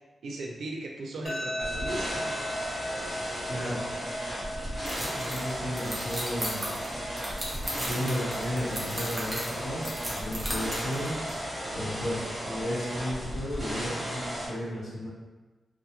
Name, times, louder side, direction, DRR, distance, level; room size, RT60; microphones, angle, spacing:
voice 1, 0.2-2.4, right 2 dB, 90° right, 0 dB, 0.4 m, -37 dB
sound 1, 1.3-14.2, equal, 35° left, 0.5 m, -40 dB
sound 2, 1.6-14.5, equal, 5° left, 0.9 m, -35 dB
voice 2, 3.4-3.8 5.0-6.7 7.8-11.2 11.7-15.1, equal, 85° left, -10 dB, 1.0 m, -34 dB
sound 3, 4.9-11.3, equal, 20° right, 0.6 m, -37 dB
2.2 x 2.0 x 2.8 m, 1.2 s
wide cardioid pair, 150°, 0 cm